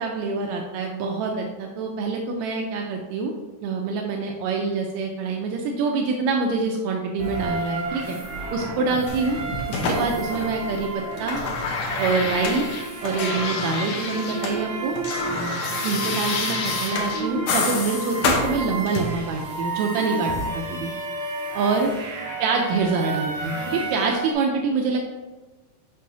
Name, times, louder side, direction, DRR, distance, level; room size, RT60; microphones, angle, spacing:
voice 1, 0.0-3.3 3.6-8.2 8.5-9.4 9.7-11.4 12.0-12.6 13.0-14.9 15.8-20.9 21.5-21.9 22.4-25.0, right 4 dB, 85° right, 1 dB, 1.6 m, -25 dB
sound 1, 7.2-24.3, right 3 dB, 65° right, 1.2 m, -32 dB
sound 2, 9.1-10.8 11.0-14.6 14.8-19.3 20.3-20.4, left 4 dB, 70° left, 1.8 m, -28 dB
6.6 x 5.5 x 2.6 m, 1.1 s
omnidirectional pair, 3.8 m